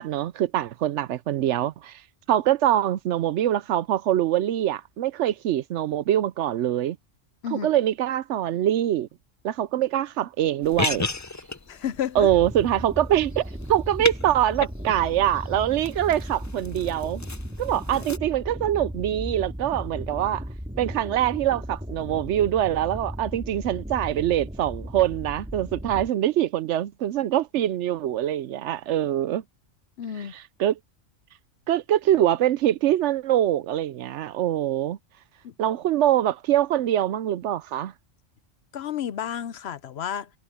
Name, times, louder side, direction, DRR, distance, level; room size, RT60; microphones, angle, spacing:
voice 1, 0.0-2.0 2.3-7.0 7.5-9.1 9.4-11.1 12.2-17.2 17.6-20.4 20.8-29.4 30.3-30.8 31.7-35.0 35.6-37.9, right 12 dB, 70° right, 0.9 m, -24 dB
sound 1, 10.6-18.2, left 3 dB, 20° left, 0.4 m, -35 dB
voice 2, 11.7-12.3 30.0-30.3 35.4-35.5 38.7-40.3, left 9 dB, 60° left, 0.8 m, -31 dB
sound 2, 12.2-26.1, equal, 5° right, 2.9 m, -36 dB
omnidirectional pair, 1.3 m